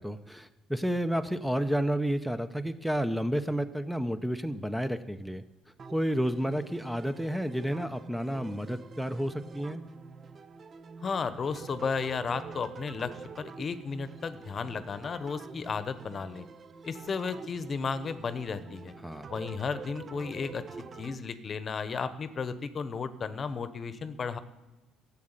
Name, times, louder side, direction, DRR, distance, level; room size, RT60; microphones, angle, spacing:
voice 1, 0.0-5.4 5.9-9.8 19.0-19.3, equal, ahead, 10 dB, 0.7 m, -31 dB
sound 1, 5.8-21.2, right 5 dB, 35° right, 0.8 m, -47 dB
voice 2, 11.0-16.5 16.8-18.9 19.3-20.6 21.0-24.4, left 5 dB, 40° left, 13 dB, 1.0 m, -34 dB
13.0 x 7.5 x 9.0 m, 1.1 s
cardioid pair, 90°, 0 cm